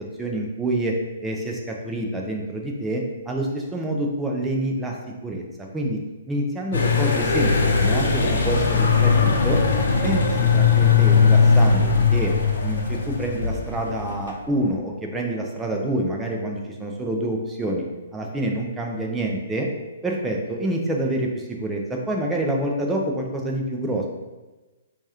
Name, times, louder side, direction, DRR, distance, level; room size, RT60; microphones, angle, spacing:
voice 1, 0.2-1.0 1.2-4.9 5.2-6.0 6.3-9.6 10.0-12.3 12.6-17.9 18.1-19.7 20.0-24.0, right 1 dB, 10° right, -1 dB, 0.5 m, -27 dB
sound 1, 6.7-14.3, left 5 dB, 70° left, 0.7 m, -19 dB
4.5 x 2.4 x 2.8 m, 1.2 s
hypercardioid pair, 140°, 0 cm